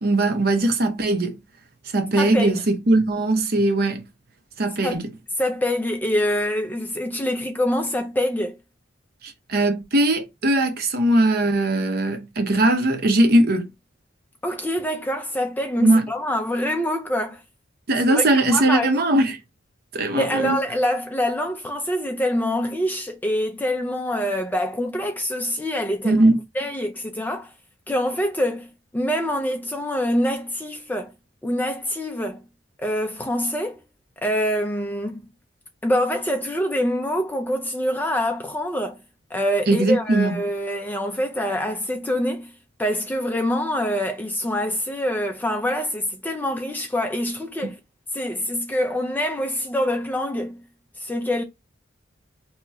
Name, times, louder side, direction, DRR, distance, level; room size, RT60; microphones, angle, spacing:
voice 1, 0.0-1.3 1.9-4.0 4.6-5.0 9.2-13.7 15.8-16.1 17.9-19.4 19.9-20.6 26.0-26.4 39.7-40.4, right 2 dB, 50° right, 0.7 m, -20 dB
voice 2, 2.2-2.5 4.8-5.0 5.4-8.6 14.4-17.4 18.0-18.2 18.5-19.1 20.1-26.2 26.5-27.5 27.9-28.7 28.9-31.1 31.4-32.4 32.8-33.8 34.2-35.2 35.8-39.0 39.3-42.5 42.8-47.8 48.1-50.6 51.0-51.4, equal, 10° left, 0.4 m, -25 dB
2.9 x 2.3 x 4.2 m
head